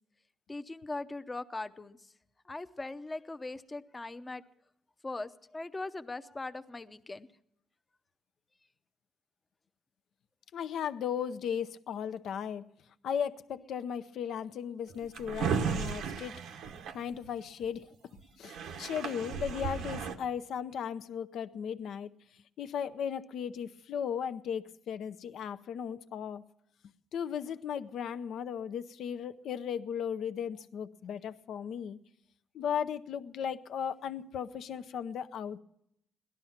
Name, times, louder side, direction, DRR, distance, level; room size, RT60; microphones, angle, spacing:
voice 1, 0.5-2.1 2.4-4.4 5.0-7.3 27.5-27.6, left 2 dB, 20° left, 0.7 m, -40 dB
voice 2, 10.5-12.6 13.0-16.4 16.9-17.9 18.4-22.1 22.6-26.4 27.1-32.0 32.5-35.6, left 8 dB, 70° left, 0.6 m, -36 dB
Drawer open or close, 14.9-17.7 18.2-18.3 18.4-20.2, right 6 dB, 85° right, 1.0 m, -35 dB
17.5 x 12.5 x 5.7 m
cardioid pair, 90°, 0 cm